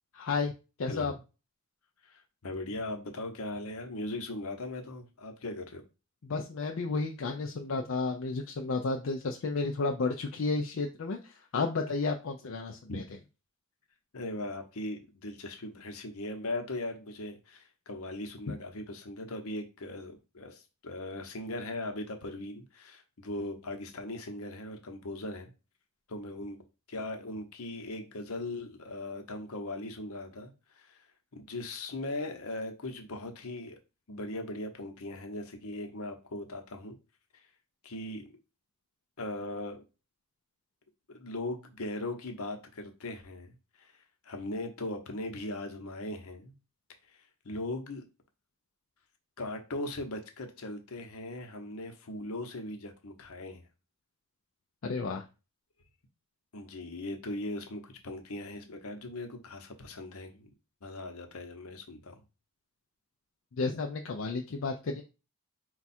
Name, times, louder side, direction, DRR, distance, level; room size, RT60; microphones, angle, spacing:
voice 1, 0.1-0.5 0.8-1.1 6.2-13.0 54.8-55.2 63.6-65.0, left 3 dB, 60° left, 0.5 m, -32 dB
voice 2, 0.9-1.2 2.0-5.8 12.9-13.0 14.1-25.5 26.1-26.6 26.9-31.0 31.3-33.8 34.1-37.0 37.8-38.4 39.2-39.8 41.1-43.9 44.2-46.5 47.1-47.2 47.4-48.0 49.4-53.6 56.5-60.5 60.8-62.2, left 2 dB, 80° left, 0.9 m, -39 dB
4.5 x 2.4 x 4.2 m
head